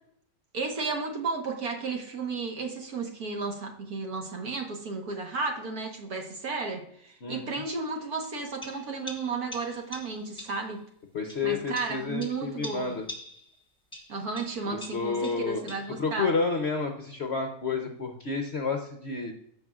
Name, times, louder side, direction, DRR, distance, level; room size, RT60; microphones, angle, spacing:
voice 1, 0.5-10.8 11.4-13.0 14.1-16.3, right 4 dB, 60° right, 3 dB, 1.7 m, -33 dB
voice 2, 7.2-7.5 11.1-13.1 14.7-15.7 16.0-19.3, left 4 dB, 55° left, 4 dB, 0.8 m, -30 dB
sound 1, 8.6-10.7 11.3-13.6 13.9-16.0, left 1 dB, 5° left, 1.1 m, -44 dB
15.0 x 5.4 x 2.4 m, 0.70 s
omnidirectional pair, 1.9 m